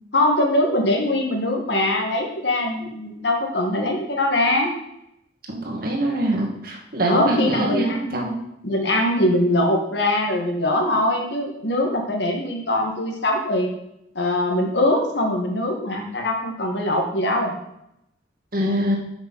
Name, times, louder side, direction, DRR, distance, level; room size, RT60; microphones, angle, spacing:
voice 1, 0.1-4.7 7.1-8.2 8.6-13.7 14.1-17.6, left 1 dB, 70° left, 2 dB, 1.7 m, -22 dB
voice 2, 5.5-8.4 18.5-19.0, right 1 dB, 50° right, -1 dB, 1.9 m, -24 dB
6.8 x 5.9 x 5.5 m, 0.82 s
head